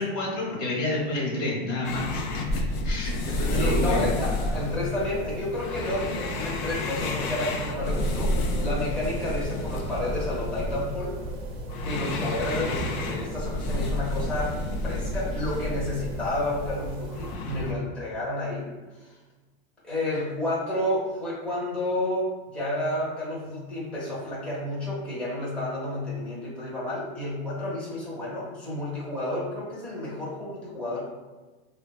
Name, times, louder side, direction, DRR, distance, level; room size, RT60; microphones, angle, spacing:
voice 1, 0.0-4.1, left 2 dB, 45° left, -4 dB, 1.1 m, -29 dB
sound 1, 1.8-17.7, left 2 dB, 60° left, 0.5 m, -30 dB
voice 2, 3.3-11.2 11.8-18.7 19.0-19.1 19.8-31.0, left 1 dB, 5° left, -7 dB, 0.7 m, -31 dB
sound 2, 3.4-17.4, right 3 dB, 60° right, 0.6 m, -40 dB
3.3 x 2.2 x 2.2 m, 1.2 s
supercardioid pair, 135°, 31 cm